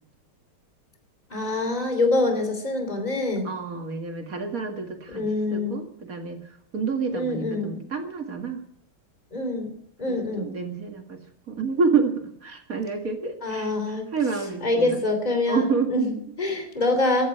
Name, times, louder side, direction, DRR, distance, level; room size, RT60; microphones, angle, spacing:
voice 1, 1.3-3.5 5.1-5.8 7.1-7.8 9.3-9.7 10.0-10.5 13.4-14.1 14.6-17.3, left 2 dB, 20° left, 6 dB, 3.0 m, -25 dB
voice 2, 3.4-8.6 10.1-15.0 15.5-15.9, right 5 dB, 45° right, 4 dB, 2.5 m, -29 dB
14.5 x 10.0 x 9.8 m, 0.70 s
omnidirectional pair, 2.2 m